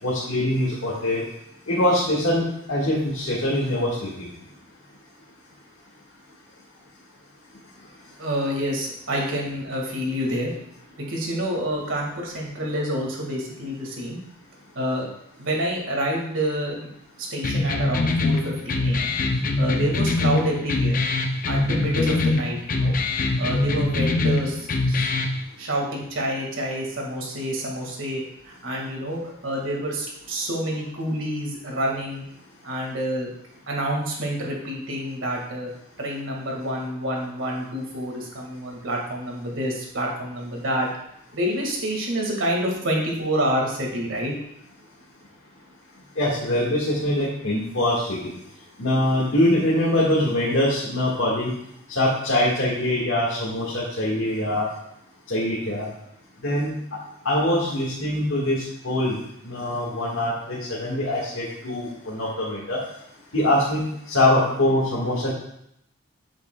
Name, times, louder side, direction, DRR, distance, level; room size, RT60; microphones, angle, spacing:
voice 1, 0.0-1.2 1.7-4.3 46.2-48.3 48.8-51.5 51.9-54.6 55.3-55.8 56.4-56.7 57.2-59.2 59.4-62.8 63.3-65.3, left 1 dB, 75° left, -6 dB, 1.6 m, -23 dB
voice 2, 8.2-10.5 11.0-14.2 14.8-15.1 15.4-16.9 17.2-19.1 19.6-21.0 21.4-23.0 23.4-25.1 25.6-32.2 32.6-33.3 33.7-35.7 36.0-40.9 41.3-44.3, equal, 65° right, -1 dB, 1.8 m, -28 dB
sound 1, 17.4-25.4, left 2 dB, 40° left, 0.5 m, -23 dB
8.0 x 7.4 x 2.2 m, 0.75 s
head